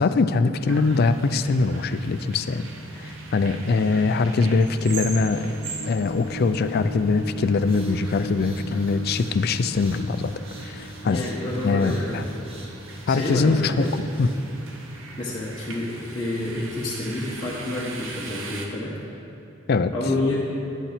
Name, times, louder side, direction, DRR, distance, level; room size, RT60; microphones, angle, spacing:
voice 1, 0.0-2.7 3.0-5.5 5.9-10.3 10.6-11.2 11.6-12.2 13.1-13.9 14.2-14.3 19.7-19.9, left 4 dB, 50° left, 10 dB, 0.4 m, -22 dB
sound 1, 0.7-18.7, right 2 dB, 80° right, 1.0 m, -39 dB
sound 2, 5.3-12.9, equal, 75° left, 0.8 m, -40 dB
sound 3, 7.5-14.6, right 1 dB, 30° right, 1.3 m, -47 dB
voice 2, 11.0-12.3 13.1-13.9 15.2-18.9 19.9-20.4, left 2 dB, 20° left, -7 dB, 1.1 m, -28 dB
10.0 x 6.9 x 5.8 m, 2.8 s
head